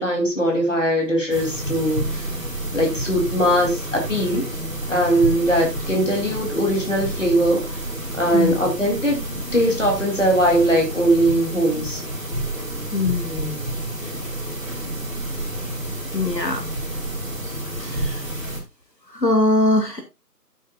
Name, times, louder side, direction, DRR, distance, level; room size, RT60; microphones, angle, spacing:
voice 1, 0.0-2.3 2.7-4.4 4.9-7.7 8.1-9.2 9.5-12.0, right 1 dB, 45° left, 1 dB, 3.5 m, -20 dB
sound 1, 1.3-18.6, right 1 dB, 50° right, 3.4 m, -29 dB
voice 2, 12.9-13.6 16.1-16.6 17.9-18.2 19.1-20.0, left 2 dB, 75° left, 4 dB, 2.9 m, -21 dB
11.0 x 9.2 x 2.5 m, 0.23 s
figure-of-eight pair, 175°, 50 cm